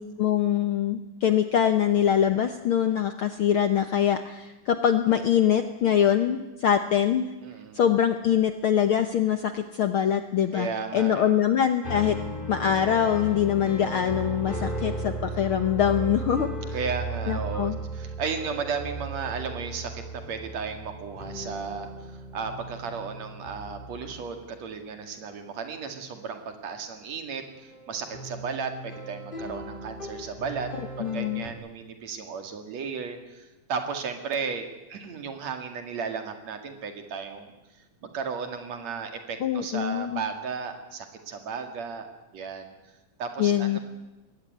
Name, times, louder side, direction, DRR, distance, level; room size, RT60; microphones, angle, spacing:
voice 1, 0.0-7.3 7.7-12.2 12.5-16.7 17.3-17.8 31.0-31.5 39.4-40.2 43.4-43.8, left 9 dB, 65° left, 9 dB, 1.4 m, -24 dB
voice 2, 7.4-7.8 10.5-11.4 16.7-30.7 31.0-37.5 38.0-42.1 42.3-42.7 43.2-43.8, right 5 dB, 65° right, 6 dB, 3.2 m, -34 dB
sound 1, 11.8-24.4 27.4-31.5, right 1 dB, 20° left, 2.4 m, -36 dB
21.5 x 17.0 x 9.4 m, 1.1 s
omnidirectional pair, 3.5 m